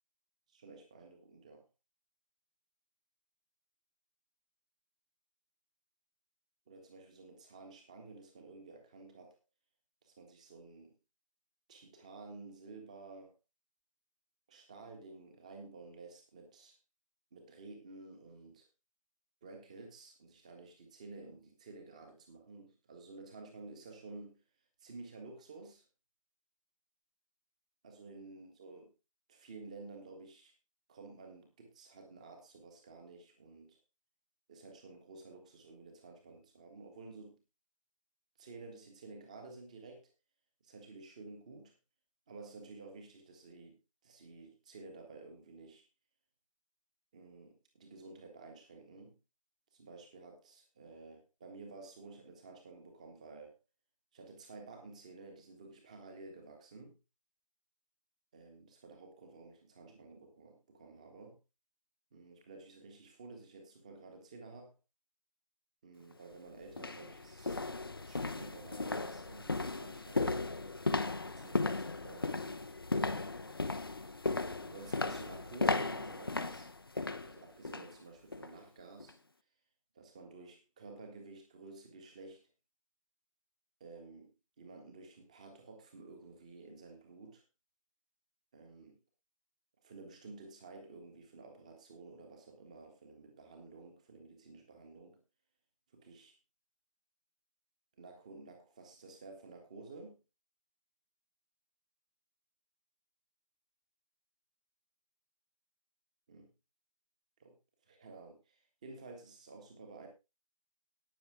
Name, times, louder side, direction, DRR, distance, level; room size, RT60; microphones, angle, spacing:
voice 1, 0.5-1.6 6.7-9.4 10.0-10.9 11.7-13.3 14.5-16.8 17.3-18.7 19.4-24.4 24.8-25.8 27.8-28.9 29.3-30.5 30.9-33.8 34.5-37.4 38.4-40.1 40.6-41.7 42.3-45.8 47.1-49.2 49.7-53.6 54.1-57.0 58.3-61.4 62.1-64.7 65.8-67.7 68.0-70.5 71.0-72.8 74.6-76.7 77.2-79.2 79.9-82.5 83.8-87.4 88.5-89.0 89.8-95.2 95.9-96.4 98.0-100.2 106.3-106.5 107.4-107.5 107.9-110.1, right 3 dB, 10° right, 5 dB, 1.5 m, -52 dB
sound 1, 66.0-66.1 66.7-78.0 78.3-78.6 79.0-79.1, left 3 dB, 40° left, 0.8 m, -36 dB
18.0 x 6.8 x 3.5 m, 0.26 s
figure-of-eight pair, 160°, 18 cm